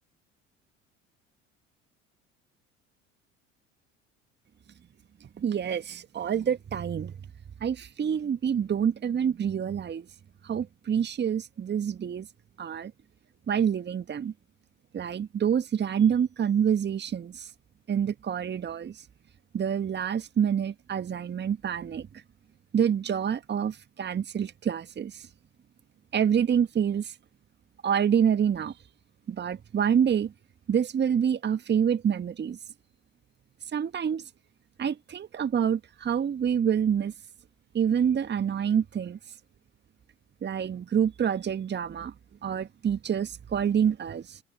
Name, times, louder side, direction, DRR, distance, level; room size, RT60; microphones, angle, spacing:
voice 1, 5.2-7.1 7.6-10.1 10.4-12.3 12.6-12.9 13.5-14.3 14.9-17.5 17.9-19.0 19.5-22.2 22.7-25.3 26.1-27.2 27.8-28.7 29.3-30.3 30.7-32.6 33.7-34.2 34.8-37.1 37.7-39.2 40.4-42.1 42.4-44.4, right 8 dB, 30° right, 1.8 m, -27 dB
figure-of-eight pair, 65°, 38 cm